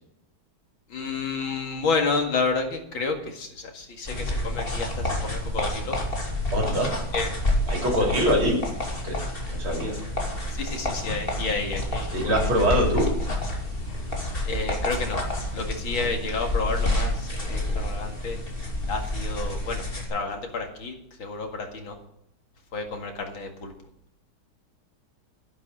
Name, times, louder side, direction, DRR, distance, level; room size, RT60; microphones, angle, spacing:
voice 1, 0.9-6.0 7.1-7.3 7.7-7.8 10.6-12.5 14.4-15.2 15.5-18.4 18.9-22.0 22.7-23.7, left 4 dB, 75° left, 3 dB, 2.8 m, -30 dB
sound 1, 4.1-20.1, left 1 dB, 25° left, 2.9 m, -29 dB
voice 2, 6.5-6.9 7.7-8.6 9.0-9.2 9.5-9.9 12.1-13.1 15.9-16.0, equal, 75° right, -1 dB, 4.8 m, -23 dB
11.5 x 11.0 x 5.3 m, 0.75 s
omnidirectional pair, 2.2 m